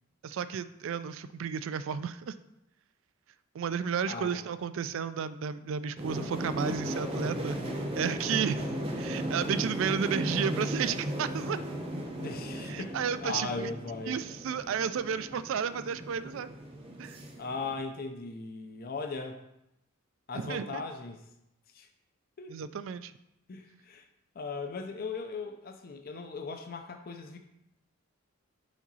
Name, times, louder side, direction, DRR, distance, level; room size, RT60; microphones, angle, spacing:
voice 1, 0.2-2.3 3.5-7.6 8.0-8.6 9.0-11.6 12.7-13.7 14.1-16.5 17.0-17.2 20.4-20.8 22.5-23.1, right 7 dB, 65° right, 14 dB, 0.3 m, -32 dB
voice 2, 4.1-4.4 12.2-14.2 17.4-19.4 20.3-21.3 21.7-21.9 22.4-22.6 23.5-24.0 24.4-27.4, left 4 dB, 45° left, 4 dB, 0.5 m, -38 dB
sound 1, 6.0-17.8, right 1 dB, 25° right, 0.7 m, -36 dB
5.0 x 3.9 x 5.4 m, 0.85 s
head